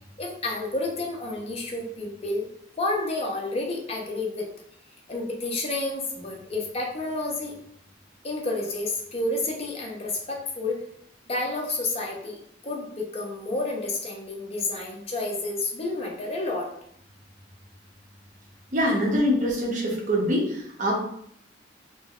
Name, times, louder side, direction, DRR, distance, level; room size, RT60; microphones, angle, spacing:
voice 1, 0.2-2.5 2.8-4.5 5.1-7.6 8.2-10.8 11.3-12.4 12.6-16.7, left 2 dB, 35° left, 0 dB, 0.6 m, -30 dB
voice 2, 18.7-20.9, equal, 45° right, -3 dB, 0.8 m, -24 dB
4.4 x 2.1 x 2.4 m, 0.69 s
head